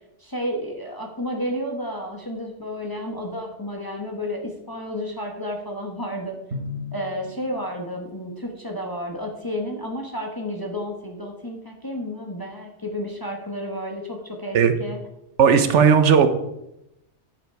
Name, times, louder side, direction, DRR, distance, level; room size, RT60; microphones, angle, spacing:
voice 1, 0.2-6.4 6.9-15.0, equal, 20° left, 1 dB, 1.3 m, -31 dB
Drum, 6.5-8.7, left 3 dB, 70° right, 1.4 m, -37 dB
voice 2, 15.4-16.3, right 7 dB, 85° right, 9 dB, 1.2 m, -15 dB
10.0 x 7.2 x 4.6 m, 0.84 s
omnidirectional pair, 1.2 m